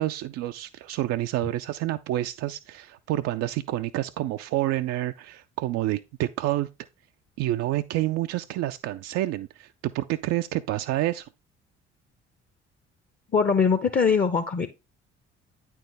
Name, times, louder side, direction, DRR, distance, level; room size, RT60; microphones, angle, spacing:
voice 1, 0.0-6.7 7.4-11.3, right 15 dB, 50° right, 0.5 m, -28 dB
voice 2, 13.3-14.7, left 5 dB, 25° left, 0.8 m, -22 dB
9.2 x 4.6 x 3.4 m
figure-of-eight pair, 45°, 33 cm